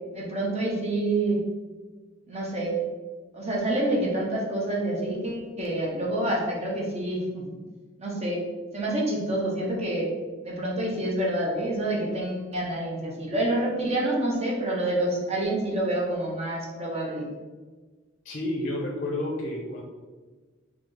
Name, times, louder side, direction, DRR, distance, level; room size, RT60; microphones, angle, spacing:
voice 1, 0.1-1.5 2.3-2.8 3.3-7.4 8.0-8.4 8.7-10.1 10.4-17.3, right 1 dB, 30° right, -2 dB, 0.8 m, -27 dB
voice 2, 18.2-19.8, left 1 dB, 40° left, 0 dB, 0.5 m, -30 dB
3.9 x 3.1 x 3.3 m, 1.4 s
head